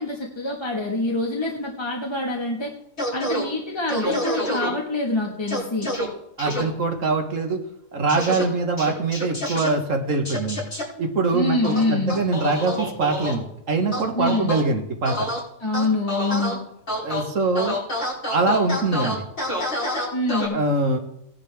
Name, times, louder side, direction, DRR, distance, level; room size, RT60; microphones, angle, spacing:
voice 1, 0.0-2.7 3.1-5.9 11.3-12.2 14.1-14.5 15.6-16.6 20.1-20.6, left 2 dB, 20° left, -1 dB, 1.5 m, -25 dB
sound 1, 3.0-3.4 3.9-4.7 5.5-6.0 6.4-6.6 8.1-8.4 8.8-9.7 10.2-10.8 11.6-13.3 13.9-14.6 15.0-15.4 15.7-16.5 16.9-17.2 17.6-20.5, equal, 60° left, 6.2 m, -27 dB
voice 2, 6.4-7.6 7.9-10.6 11.0-15.3 17.0-17.8 18.3-19.3 20.5-21.0, right 3 dB, 70° right, 4 dB, 1.7 m, -23 dB
19.0 x 10.5 x 3.4 m, 0.81 s
omnidirectional pair, 1.4 m